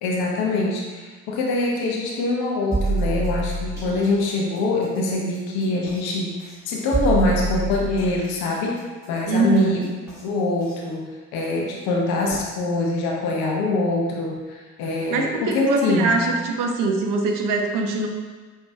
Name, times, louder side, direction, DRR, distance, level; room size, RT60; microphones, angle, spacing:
voice 1, 0.0-6.4 6.7-8.8 9.1-9.8 10.2-16.2, left 2 dB, 60° left, -1 dB, 0.7 m, -24 dB
sound 1, 2.7-4.0 5.9-6.0 6.9-8.3 10.1-10.2 10.7-10.8, right 2 dB, 5° right, 1.5 m, -25 dB
voice 2, 9.3-9.9 15.1-18.1, right 3 dB, 50° right, 2 dB, 0.6 m, -22 dB
5.2 x 2.4 x 2.3 m, 1.4 s
figure-of-eight pair, 50°, 42 cm